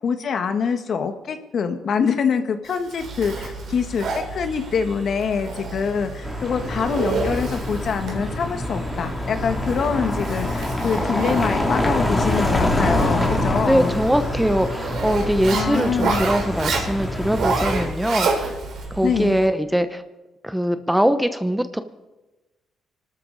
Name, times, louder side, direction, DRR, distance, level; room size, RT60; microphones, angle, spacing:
voice 1, 0.0-14.0 15.5-16.2 19.0-19.4, left 6 dB, 55° left, 7 dB, 1.7 m, -25 dB
Zipper (clothing), 2.7-18.8, right 4 dB, 70° right, 4.0 m, -30 dB
sound 1, 3.0-19.5, right 1 dB, 40° right, 5.6 m, -37 dB
sound 2, 6.2-17.9, left 1 dB, 15° left, 2.8 m, -25 dB
voice 2, 13.6-18.6 18.9-20.0 20.4-21.8, equal, 5° right, 10 dB, 1.0 m, -22 dB
25.0 x 13.0 x 4.1 m, 1.1 s
cardioid pair, 90°, 0 cm